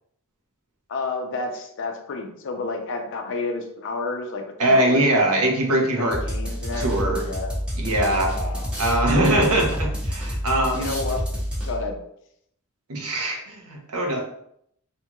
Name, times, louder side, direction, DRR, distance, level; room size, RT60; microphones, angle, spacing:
voice 1, 0.9-7.5 8.2-8.7 10.7-11.2 11.6-12.0, left 3 dB, 60° left, 4 dB, 0.4 m, -31 dB
voice 2, 4.6-6.2 6.8-7.3 7.8-8.3 8.8-10.9 12.9-14.2, right 1 dB, 90° right, 1 dB, 0.7 m, -22 dB
sound 1, 6.1-12.0, equal, 5° right, 0.7 m, -28 dB
2.6 x 2.3 x 2.9 m, 0.72 s
head